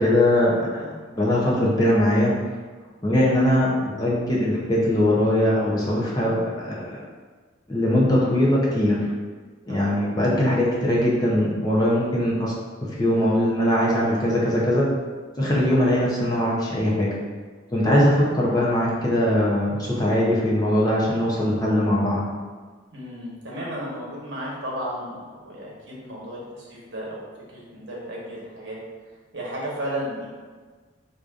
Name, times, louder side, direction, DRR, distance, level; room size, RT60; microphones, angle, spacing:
voice 1, 0.0-2.3 3.0-7.0 7.7-9.0 9.7-12.5 13.0-14.9 15.4-17.1 17.7-22.2, left 1 dB, 20° left, -5 dB, 0.5 m, -21 dB
voice 2, 9.7-10.0 22.9-27.2 27.5-28.8 29.3-30.3, equal, 60° right, -5 dB, 1.0 m, -34 dB
4.7 x 2.6 x 2.4 m, 1.4 s
head